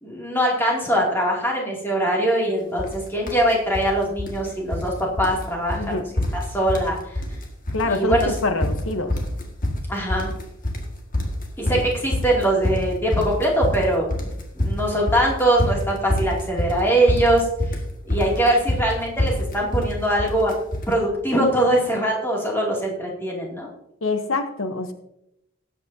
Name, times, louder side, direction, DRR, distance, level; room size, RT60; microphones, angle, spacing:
voice 1, 0.0-7.0 7.8-8.3 9.9-10.3 11.6-14.2 14.6-17.5 18.1-20.5 20.9-23.7, right 1 dB, 10° left, -2 dB, 2.5 m, -22 dB
sound 1, 2.8-3.0 3.3-3.9 4.2-4.9 5.2-5.4 5.7-5.9 6.2-6.9 7.2-7.8 8.1-20.9, left 1 dB, 40° left, 1.8 m, -25 dB
voice 2, 7.7-9.1 24.0-24.9, left 2 dB, 80° left, 7 dB, 1.0 m, -25 dB
19.0 x 8.4 x 2.7 m, 0.82 s
head